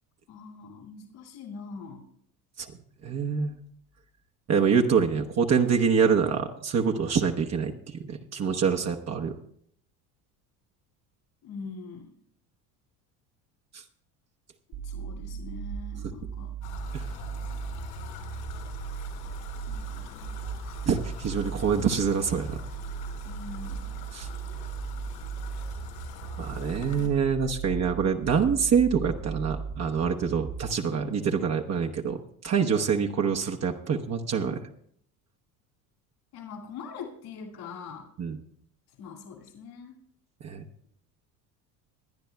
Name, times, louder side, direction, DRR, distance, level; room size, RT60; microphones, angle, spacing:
voice 1, 0.3-2.1 11.4-12.1 14.7-16.6 19.7-20.9 23.2-23.9 36.3-38.1 39.0-40.0, left 5 dB, 60° left, 2 dB, 2.4 m, -43 dB
voice 2, 3.0-3.5 4.5-9.3 20.9-22.6 24.1-24.3 26.4-32.2 32.4-34.6 38.2-38.4 40.4-40.6, right 6 dB, 35° right, 2 dB, 1.0 m, -25 dB
sound 1, 14.7-30.7, right 7 dB, 65° right, 2.5 m, -37 dB
sound 2, 16.6-27.1, left 7 dB, 75° left, 3.9 m, -44 dB
23.0 x 10.5 x 2.3 m, 0.66 s
hypercardioid pair, 80°, 44 cm